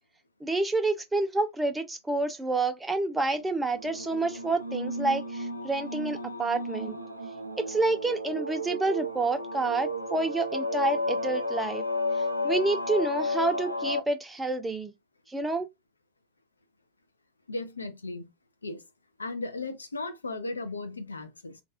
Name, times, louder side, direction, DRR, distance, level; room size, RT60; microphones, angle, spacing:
voice 1, 0.4-7.0 7.6-11.8 12.2-14.9 15.3-15.7, right 2 dB, 10° right, 0.5 m, -29 dB
sound 1, 3.7-14.0, left 1 dB, 90° right, 0.3 m, -32 dB
voice 2, 17.5-18.3 18.6-18.8 19.2-21.6, left 2 dB, 80° left, 0.5 m, -36 dB
2.4 x 2.3 x 3.4 m
figure-of-eight pair, 90°, 0 cm